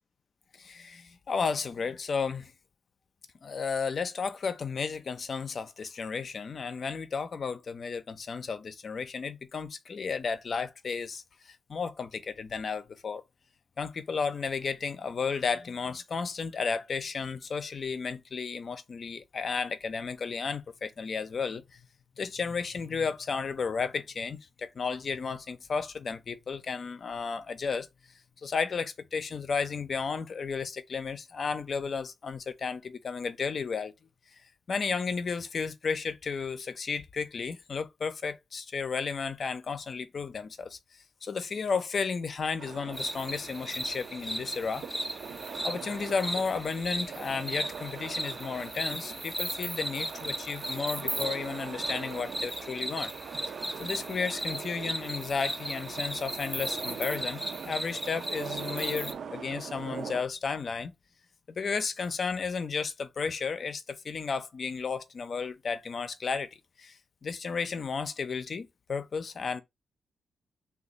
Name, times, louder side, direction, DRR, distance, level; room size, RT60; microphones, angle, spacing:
voice 1, 0.6-2.5 3.4-13.2 13.8-21.8 22.2-27.9 28.4-33.9 34.7-40.8 41.2-44.8 45.6-53.1 53.8-60.9 61.5-66.5 66.8-69.6, left 5 dB, 50° left, 0.5 m, -33 dB
sound 1, 42.6-60.2, right 7 dB, 65° right, 0.5 m, -42 dB
sound 2, 42.9-59.1, equal, 5° right, 0.6 m, -37 dB
3.0 x 2.4 x 3.7 m
cardioid pair, 85°, 0 cm